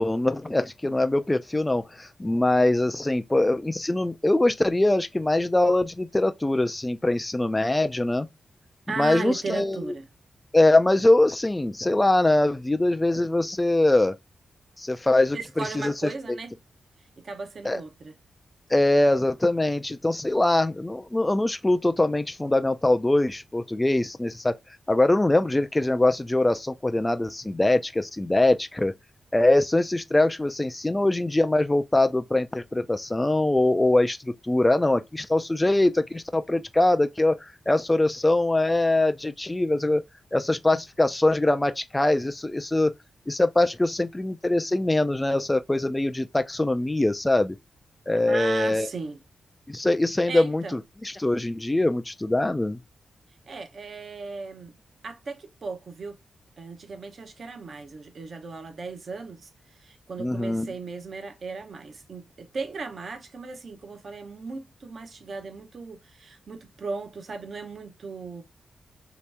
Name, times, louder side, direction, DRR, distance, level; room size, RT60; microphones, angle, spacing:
voice 1, 0.0-8.3 9.0-9.9 10.5-14.2 14.8-15.9 16.3-16.4 17.6-17.8 18.7-24.5 24.9-28.9 29.3-40.0 40.3-42.9 43.3-47.6 48.1-48.9 49.7-52.8 60.2-60.7, left 2 dB, 15° left, 0.4 m, -23 dB
voice 2, 8.9-10.1 15.3-16.5 17.2-18.1 48.3-49.2 50.3-50.8 53.4-54.8 55.0-56.2 56.6-68.4, right 4 dB, 50° right, 0.8 m, -36 dB
3.1 x 2.9 x 3.3 m
wide cardioid pair, 120°, 0 cm